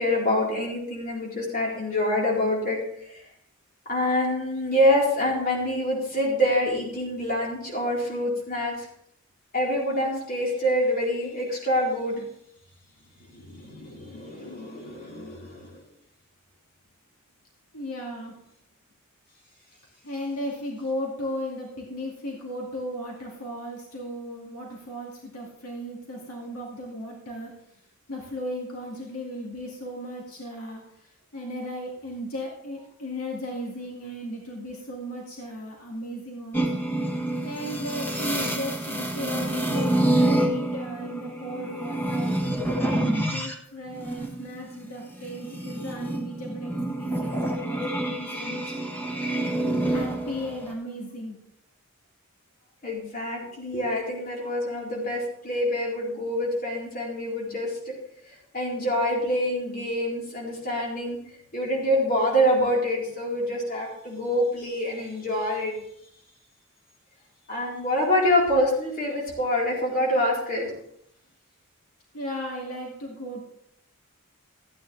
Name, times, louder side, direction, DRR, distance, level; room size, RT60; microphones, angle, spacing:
voice 1, 0.0-3.2 3.9-8.9 9.5-12.2 13.3-15.8 52.8-57.9 58.5-61.2 61.5-65.8 67.5-70.7, left 1 dB, 40° left, -4 dB, 4.2 m, -26 dB
voice 2, 17.7-18.4 20.0-27.6 28.1-36.9 37.4-42.4 42.8-46.7 47.0-48.8 49.9-51.4 72.1-73.4, equal, 85° left, -2 dB, 2.3 m, -36 dB
sound 1, 36.5-43.5 43.9-50.7, right 1 dB, 10° left, 1.6 m, -27 dB
14.5 x 9.5 x 3.4 m, 0.71 s
head